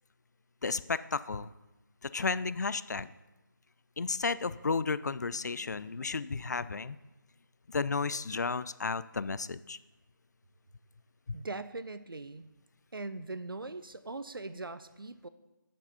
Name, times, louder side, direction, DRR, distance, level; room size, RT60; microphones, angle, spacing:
voice 1, 0.6-1.5 2.0-3.1 4.0-7.0 7.7-9.8 11.3-11.4, left 4 dB, 55° left, 16 dB, 0.4 m, -33 dB
voice 2, 11.3-12.5 12.9-15.3, right 3 dB, 90° right, 13 dB, 0.7 m, -41 dB
7.5 x 6.8 x 5.6 m, 1.0 s
figure-of-eight pair, 165°, 11 cm